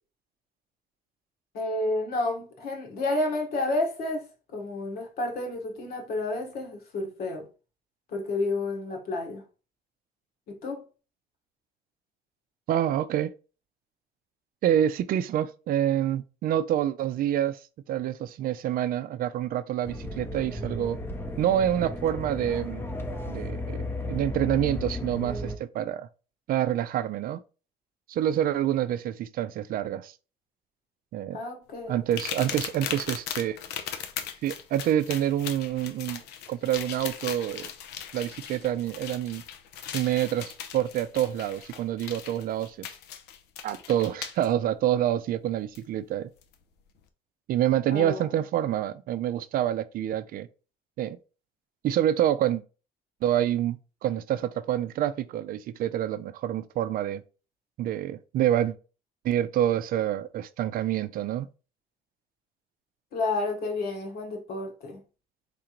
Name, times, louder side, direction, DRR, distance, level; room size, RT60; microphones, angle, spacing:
voice 1, 1.5-7.5 8.1-9.4 10.5-10.8 31.3-32.0 47.9-48.2 63.1-65.0, left 2 dB, 65° left, 1.4 m, -30 dB
voice 2, 12.7-13.3 14.6-17.6 17.9-21.0 21.4-22.9 23.3-23.8 24.1-26.1 26.5-27.4 28.1-30.1 31.1-31.4 31.9-33.6 34.4-36.2 36.5-37.7 38.1-39.4 39.9-42.9 43.6-46.3 47.5-50.5 51.0-51.2 51.8-52.6 53.2-57.2 57.8-58.8 59.2-61.5, right 11 dB, 60° right, 0.4 m, -27 dB
sound 1, 19.8-25.6, left 1 dB, 15° left, 0.6 m, -34 dB
sound 2, 32.1-44.5 45.7-45.8 46.4-46.5, left 9 dB, 85° left, 0.6 m, -38 dB
3.8 x 3.3 x 3.0 m
cardioid pair, 110°, 17 cm